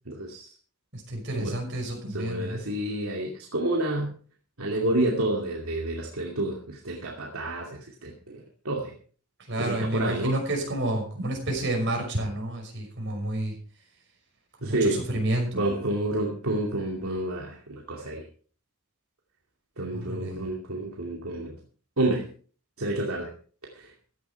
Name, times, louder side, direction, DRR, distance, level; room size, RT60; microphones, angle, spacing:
voice 1, 0.1-0.5 1.4-1.5 2.1-4.2 4.6-8.9 9.6-10.4 14.6-15.0 15.5-18.2 19.8-21.6 22.0-22.3 22.8-23.3 23.7-23.9, right 1 dB, 80° right, 0 dB, 2.6 m, -29 dB
voice 2, 0.9-2.6 4.8-4.9 9.5-13.5 14.6-15.7 19.9-20.5, right 1 dB, 55° right, 1 dB, 5.9 m, -30 dB
15.5 x 11.0 x 4.6 m, 0.42 s
head